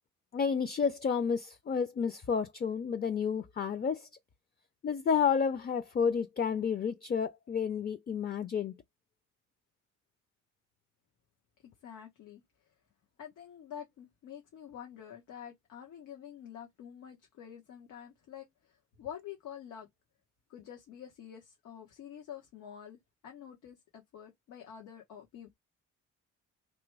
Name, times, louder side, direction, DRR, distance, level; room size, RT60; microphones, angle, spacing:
voice 1, 0.3-4.1 4.8-8.7, left 6 dB, 30° left, 0.6 m, -30 dB
voice 2, 11.6-12.4 13.2-19.9 20.5-25.5, left 9 dB, 85° left, 1.4 m, -48 dB
3.3 x 3.0 x 4.6 m
cardioid pair, 90°, 30 cm